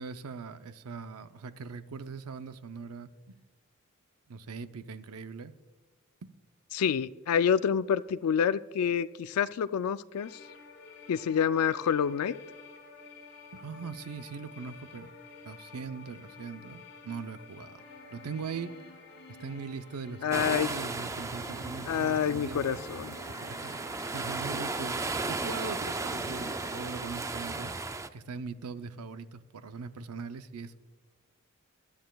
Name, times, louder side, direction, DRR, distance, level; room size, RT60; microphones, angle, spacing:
voice 1, 0.0-3.4 4.3-5.5 13.5-15.1 15.4-17.8 18.1-18.7 19.3-22.8 23.4-27.7 28.1-30.8, right 5 dB, 90° right, 11 dB, 0.6 m, -41 dB
voice 2, 6.7-10.4 11.1-12.3 20.2-20.7 21.9-23.1, left 7 dB, 85° left, 13 dB, 0.3 m, -27 dB
sound 1, 10.1-27.1, left 3 dB, 55° left, 3.1 m, -50 dB
sound 2, 20.3-28.1, right 3 dB, 15° right, 0.3 m, -35 dB
20.0 x 11.5 x 2.3 m, 1.4 s
head